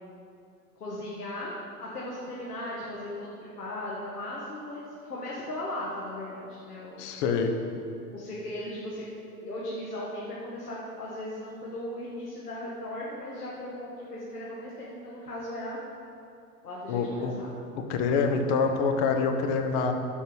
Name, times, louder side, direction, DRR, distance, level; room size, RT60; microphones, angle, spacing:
voice 1, 0.8-1.5 1.8-7.1 8.1-9.1 9.4-15.8 16.6-17.6, left 1 dB, 80° left, -5 dB, 1.8 m, -37 dB
voice 2, 7.0-7.5 16.9-17.3 17.9-19.9, left 5 dB, 45° left, 4 dB, 1.3 m, -26 dB
15.0 x 5.3 x 5.2 m, 2.6 s
figure-of-eight pair, 85°, 46 cm